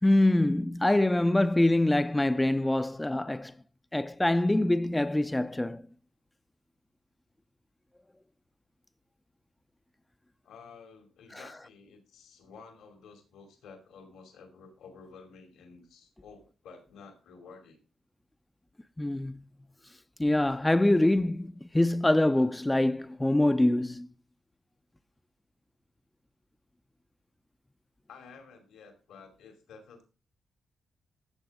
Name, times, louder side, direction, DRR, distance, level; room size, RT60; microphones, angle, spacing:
voice 1, 0.0-3.5 3.9-5.8 11.3-11.4 19.0-19.4 20.2-24.1, left 1 dB, 15° left, 0.6 m, -25 dB
voice 2, 10.4-17.8 28.1-30.0, left 5 dB, 85° left, 2.6 m, -52 dB
14.5 x 7.1 x 3.5 m
supercardioid pair, 60°, 0 cm